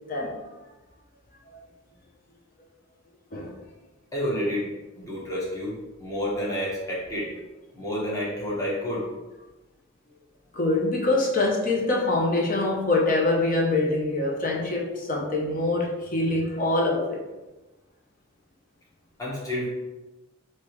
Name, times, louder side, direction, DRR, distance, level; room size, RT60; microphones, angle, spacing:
voice 1, 0.1-0.4 1.5-1.6 3.3-3.5 10.5-17.2, left 2 dB, 45° left, -1 dB, 0.8 m, -24 dB
voice 2, 4.1-4.6 5.0-7.3 7.7-9.1 19.2-19.7, equal, 20° left, -6 dB, 1.1 m, -29 dB
3.4 x 2.9 x 4.6 m, 1.1 s
head